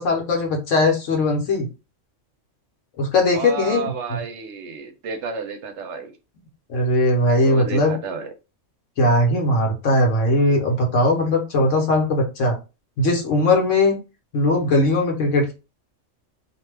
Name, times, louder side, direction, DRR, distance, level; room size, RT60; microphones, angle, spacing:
voice 1, 0.0-1.7 3.0-3.8 6.7-7.9 9.0-12.6 13.0-13.9 14.3-15.5, left 2 dB, 80° left, 2 dB, 1.2 m, -19 dB
voice 2, 3.3-6.1 7.4-8.3, right 5 dB, 70° right, 7 dB, 0.8 m, -31 dB
2.6 x 2.2 x 3.2 m, 0.30 s
omnidirectional pair, 1.3 m